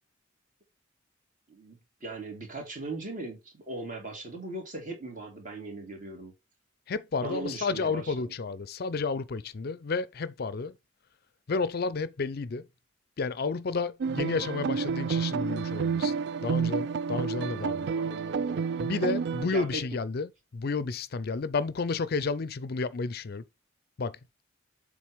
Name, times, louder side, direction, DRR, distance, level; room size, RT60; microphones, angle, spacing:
voice 1, 1.5-6.3 7.2-8.3 17.1-18.9 19.4-20.0, right 2 dB, 40° right, 2.6 m, -39 dB
voice 2, 6.9-10.8 11.5-12.7 13.2-16.1 16.4-17.9 18.8-20.3 20.5-23.4 24.0-24.2, left 4 dB, 50° left, 0.5 m, -31 dB
sound 1, 14.0-19.5, right 6 dB, 55° right, 0.3 m, -30 dB
7.4 x 3.8 x 4.9 m
head